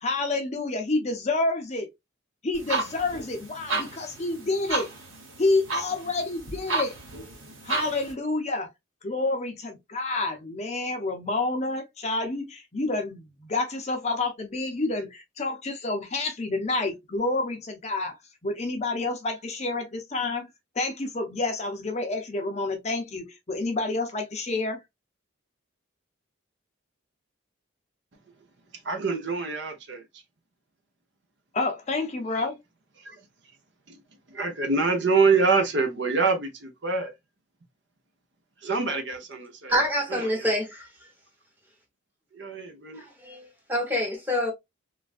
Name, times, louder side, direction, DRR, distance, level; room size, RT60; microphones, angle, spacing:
voice 1, 0.0-1.9 2.4-4.9 5.4-7.0 7.6-8.7 9.0-18.2 18.4-20.5 20.8-24.8 31.5-32.6, left 2 dB, 35° left, 0.5 m, -29 dB
sound 1, 2.5-8.1, right 3 dB, 80° right, 1.2 m, -33 dB
voice 2, 28.8-30.0 33.0-33.1 34.3-37.1 38.6-39.7 40.1-40.5 42.4-43.0, right 4 dB, 55° right, 0.7 m, -25 dB
voice 3, 39.7-40.9 43.2-43.4 43.7-44.5, equal, 10° right, 1.0 m, -26 dB
3.2 x 2.4 x 2.4 m
head